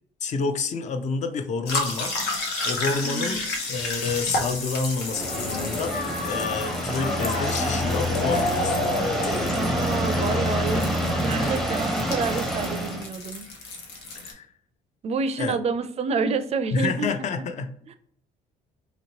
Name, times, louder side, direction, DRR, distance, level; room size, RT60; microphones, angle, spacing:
voice 1, 0.2-2.2 2.6-3.4 3.7-6.0 6.2-9.5 11.4-11.6 14.1-14.5 15.4-15.6 16.7-17.7, left 4 dB, 45° left, 8 dB, 0.5 m, -29 dB
seltzer cleaned, 1.7-14.3, left 3 dB, 80° left, 0.8 m, -33 dB
voice 2, 3.0-3.5 9.5-13.5 15.0-17.1 17.9-18.0, right 4 dB, 40° right, 10 dB, 0.4 m, -28 dB
sound 1, 5.0-13.1, equal, ahead, 0.6 m, -27 dB
sound 2, 5.1-11.0 11.3-11.4, left 2 dB, 65° left, 1.1 m, -30 dB
3.0 x 2.9 x 2.8 m, 0.64 s
cardioid pair, 110°, 17 cm